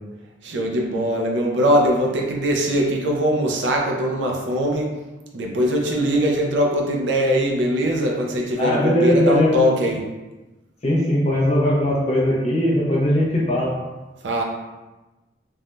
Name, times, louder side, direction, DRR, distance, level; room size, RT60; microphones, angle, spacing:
voice 1, 0.4-4.9 5.3-10.0 14.2-14.4, equal, 70° right, -1 dB, 0.5 m, -21 dB
voice 2, 8.6-9.6 10.8-13.7, left 1 dB, 35° left, -5 dB, 0.7 m, -19 dB
3.3 x 2.6 x 2.2 m, 1.1 s
head